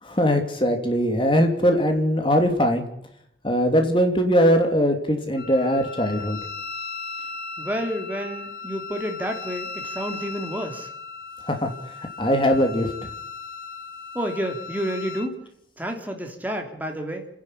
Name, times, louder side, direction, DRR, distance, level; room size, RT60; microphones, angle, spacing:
voice 1, 0.0-2.8 3.4-6.4 11.5-13.1, equal, 25° left, 5 dB, 2.8 m, -21 dB
Wind instrument woodwind instrument, 5.4-15.3, left 4 dB, 55° left, 1.9 m, -37 dB
voice 2, 7.6-10.9 14.1-15.4 15.8-17.3, equal, 10° right, 3 dB, 2.9 m, -30 dB
30.0 x 11.0 x 9.9 m, 0.76 s
head